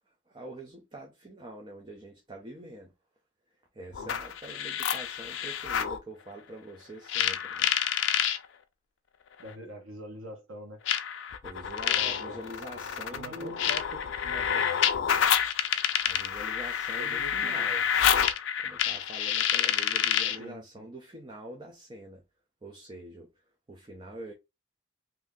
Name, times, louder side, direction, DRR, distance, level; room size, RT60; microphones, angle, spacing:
voice 1, 0.3-2.9 3.7-7.7 11.4-13.6 16.0-17.9 18.2-18.3 18.6-22.2 22.6-23.3 23.7-24.3, right 1 dB, 25° right, 0.5 m, -45 dB
sound 1, 3.9-6.0 7.1-8.4 9.5-9.6 10.9-20.4, left 9 dB, 65° left, 0.4 m, -28 dB
voice 2, 9.4-10.8 11.9-12.4 13.1-14.7 17.0-17.7 20.4-20.9, right 1 dB, 90° right, 1.1 m, -44 dB
2.8 x 2.6 x 3.5 m
head